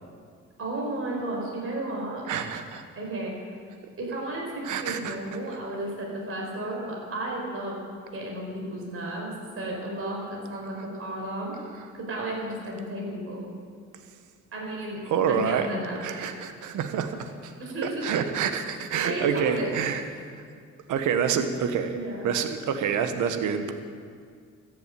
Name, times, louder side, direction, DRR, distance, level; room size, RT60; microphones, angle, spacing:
voice 1, 0.6-2.2 2.9-3.4 4.0-11.6 11.9-13.5 14.5-16.3 17.6-18.1 18.7-18.8 19.0-19.7 21.8-22.2, right 1 dB, 50° right, -2 dB, 4.7 m, -33 dB
voice 2, 2.3-2.8 4.6-5.2 15.1-15.7 16.0-17.5 17.8-20.0 20.3-20.4 20.9-22.0 22.2-23.7, right 7 dB, 80° right, 8 dB, 1.3 m, -27 dB
14.0 x 7.9 x 8.5 m, 2.1 s
cardioid pair, 90°, 30 cm